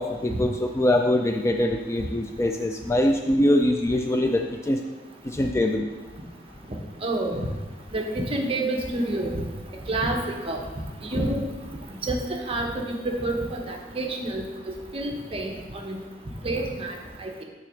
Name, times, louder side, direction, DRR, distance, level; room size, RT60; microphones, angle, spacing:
voice 1, 0.0-4.8 5.2-5.9, left 1 dB, 15° left, 3 dB, 0.3 m, -23 dB
voice 2, 7.0-7.5 7.9-9.4 9.9-10.6 11.1-11.4 12.0-15.5 15.8-16.0 16.4-17.4, right 1 dB, 30° right, 1 dB, 0.9 m, -28 dB
6.4 x 3.8 x 6.3 m, 1.2 s
head